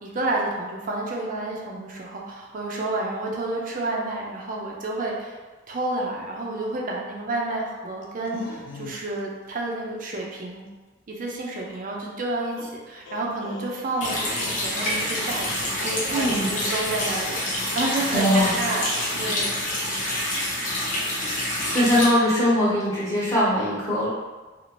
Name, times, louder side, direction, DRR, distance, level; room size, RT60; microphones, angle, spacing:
voice 1, 0.0-5.4 5.7-10.6 11.1-19.6, right 2 dB, 45° right, -2 dB, 0.5 m, -30 dB
sound 1, 8.0-9.2 9.6-9.8 11.7-11.8 12.6-15.6 15.9-16.4, left 2 dB, 70° left, 0.4 m, -41 dB
Water tap faucet, 14.0-22.0, left 1 dB, 40° left, 0.7 m, -27 dB
voice 2, 16.1-16.6 18.1-18.5 21.7-24.1, equal, 15° left, -9 dB, 0.9 m, -21 dB
2.7 x 2.4 x 3.0 m, 1.3 s
head